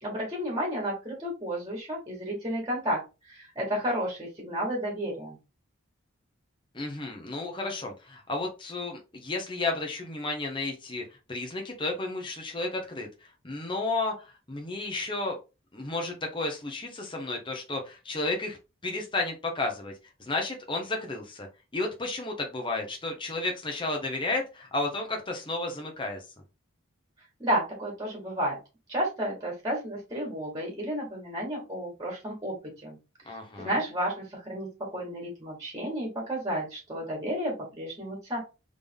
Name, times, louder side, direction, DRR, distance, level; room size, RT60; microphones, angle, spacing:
voice 1, 0.0-3.0 3.3-5.4 27.4-28.6 28.9-33.0 33.6-38.4, equal, 20° right, -2 dB, 1.9 m, -32 dB
voice 2, 6.7-15.4 15.7-18.6 18.8-19.9 20.2-21.5 21.7-26.2 33.2-33.8, left 2 dB, 25° left, 2 dB, 1.0 m, -32 dB
3.8 x 3.6 x 3.7 m, 0.28 s
head